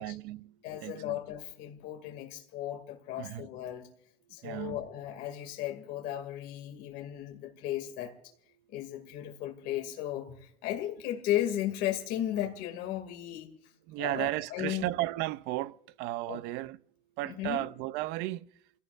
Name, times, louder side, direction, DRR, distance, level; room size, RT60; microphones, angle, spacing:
voice 1, 0.0-0.6 0.8-1.2 3.2-3.5 4.4-4.8 13.9-16.8 17.2-18.5, right 16 dB, 65° right, 0.6 m, -34 dB
voice 2, 0.6-3.9 4.3-8.1 8.7-13.5 14.0-14.9 16.3-16.4 17.2-17.7, left 12 dB, 65° left, 2.5 m, -35 dB
29.5 x 17.0 x 2.5 m
cardioid pair, 165°, 18 cm